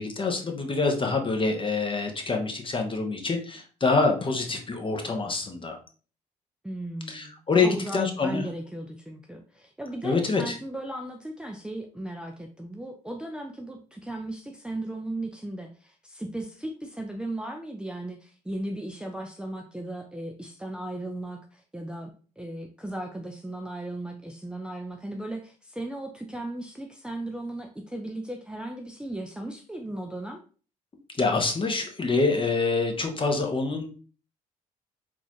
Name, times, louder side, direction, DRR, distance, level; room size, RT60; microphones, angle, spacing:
voice 1, 0.0-5.8 7.1-8.4 10.0-10.5 31.2-33.9, left 3 dB, 30° left, 3 dB, 1.0 m, -26 dB
voice 2, 6.6-22.1 22.4-30.4, right 1 dB, 5° right, 2 dB, 0.5 m, -36 dB
3.9 x 2.5 x 3.0 m, 0.39 s
hypercardioid pair, 55°, 17 cm